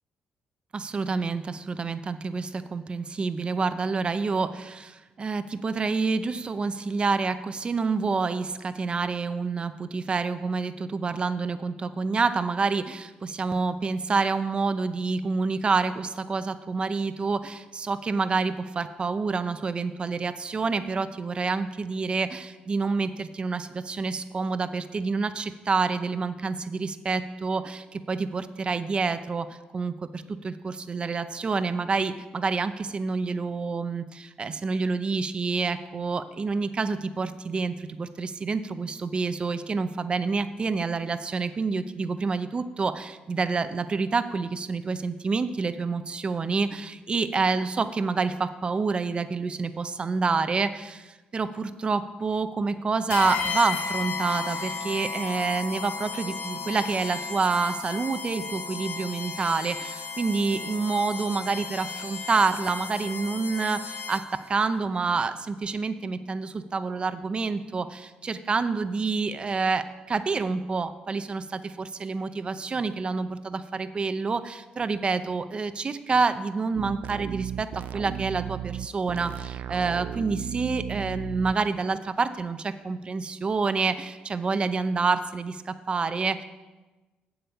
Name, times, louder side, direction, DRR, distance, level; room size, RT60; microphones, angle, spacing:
voice 1, 0.7-64.2 64.5-86.4, right 4 dB, 35° right, 11 dB, 0.6 m, -28 dB
sound 1, 53.1-64.5, left 5 dB, 75° left, 1.0 m, -34 dB
sound 2, 76.7-81.5, right 11 dB, 75° right, 0.4 m, -35 dB
8.0 x 7.8 x 7.0 m, 1.2 s
cardioid pair, 90°, 3 cm